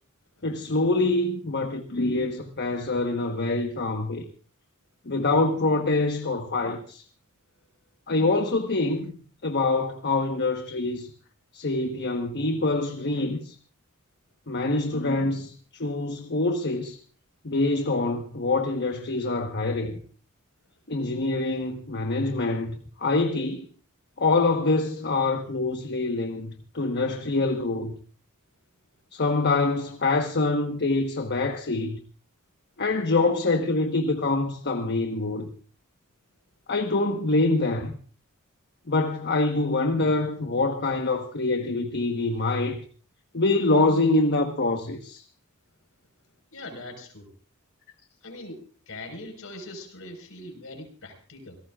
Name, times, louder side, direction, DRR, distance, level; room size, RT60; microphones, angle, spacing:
voice 1, 0.4-4.2 5.0-7.0 8.1-9.2 9.4-11.1 11.5-13.6 14.5-17.0 17.4-20.0 20.9-23.7 24.2-27.9 29.1-32.0 32.8-35.5 36.7-37.9 38.9-42.8 43.3-45.2, left 2 dB, 50° left, 1.3 m, -25 dB
voice 2, 46.5-47.3 48.2-51.6, left 2 dB, 65° left, 4.7 m, -41 dB
27.5 x 17.5 x 2.5 m
head